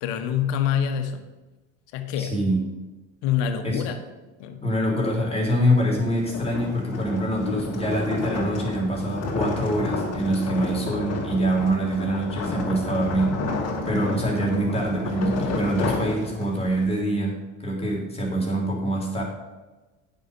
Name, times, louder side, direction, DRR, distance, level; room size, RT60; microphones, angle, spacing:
voice 1, 0.0-1.2 1.9-2.4 3.2-4.0 4.4-4.6 7.4-7.7, left 8 dB, 75° left, 7 dB, 1.3 m, -26 dB
voice 2, 2.2-2.6 3.6-3.8 4.6-13.4 13.8-19.2, right 1 dB, 15° left, -2 dB, 3.1 m, -25 dB
sound 1, 5.8-16.8, left 2 dB, 50° left, 2.5 m, -30 dB
9.2 x 5.7 x 6.4 m, 1.2 s
supercardioid pair, 85°, 33 cm